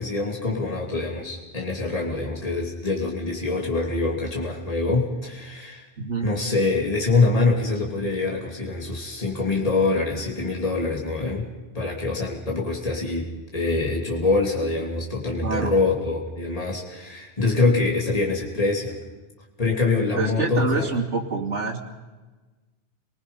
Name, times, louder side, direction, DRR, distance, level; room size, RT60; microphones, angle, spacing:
voice 1, 0.0-5.9 6.2-11.5 11.7-19.0 19.6-20.9, left 3 dB, 30° left, -1 dB, 3.1 m, -24 dB
voice 2, 6.0-6.3 15.4-15.7 20.2-21.8, right 4 dB, 85° right, 0 dB, 3.0 m, -26 dB
29.5 x 19.5 x 5.6 m, 1.3 s
omnidirectional pair, 1.2 m